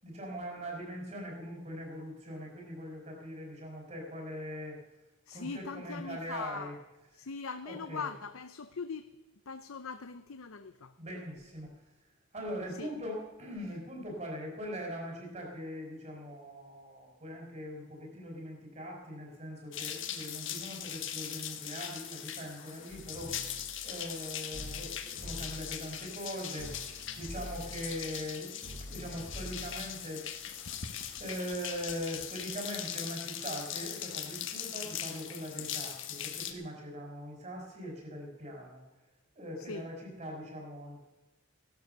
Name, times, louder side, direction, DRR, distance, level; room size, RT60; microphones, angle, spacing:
voice 1, 0.0-4.8 5.3-6.8 7.6-8.1 11.0-11.7 12.3-23.4 23.8-28.6 28.9-30.6 31.2-38.8 39.3-41.0, equal, 35° right, 0 dB, 4.9 m, -41 dB
voice 2, 5.3-6.7 7.1-9.1 9.5-10.9 12.8-12.9 39.6-39.9, left 5 dB, 80° left, 10 dB, 0.7 m, -41 dB
sound 1, 19.7-36.5, left 9 dB, 60° left, 1.4 m, -40 dB
sound 2, 22.9-24.2 24.5-26.3 26.6-30.5, left 1 dB, 75° right, 5.9 m, -47 dB
16.5 x 12.0 x 6.7 m, 1.0 s
head